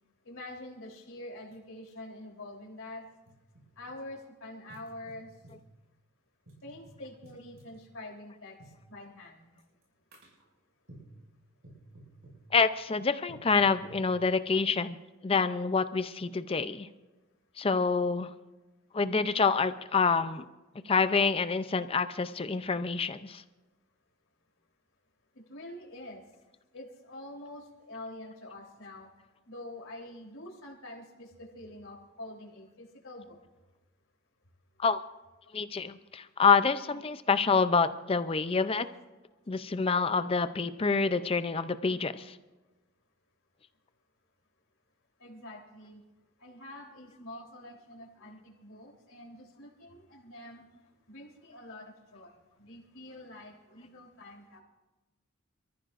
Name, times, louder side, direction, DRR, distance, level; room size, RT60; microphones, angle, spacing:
voice 1, 0.3-3.0 3.8-5.3 6.6-8.5 8.9-9.5 25.5-26.2 26.7-29.1 29.5-31.3 31.5-33.4 45.2-46.0 46.4-50.6 51.1-52.3 52.6-54.6, left 1 dB, 75° left, -3 dB, 3.6 m, -46 dB
sound 1, 1.5-1.6 1.9-2.0 2.8-4.0 4.7-5.7 6.5-7.8 8.6-8.8 9.6-9.8 10.1-10.4 10.9-11.2 11.6-12.5 13.3-14.2, right 1 dB, 70° right, 5.9 m, -53 dB
voice 2, 12.5-15.0 15.2-16.9 17.6-18.3 18.9-20.4 20.9-23.4 34.8-35.0 35.5-38.9 39.5-42.3, left 5 dB, 25° left, 12 dB, 0.4 m, -27 dB
27.5 x 14.0 x 2.5 m, 1.1 s
head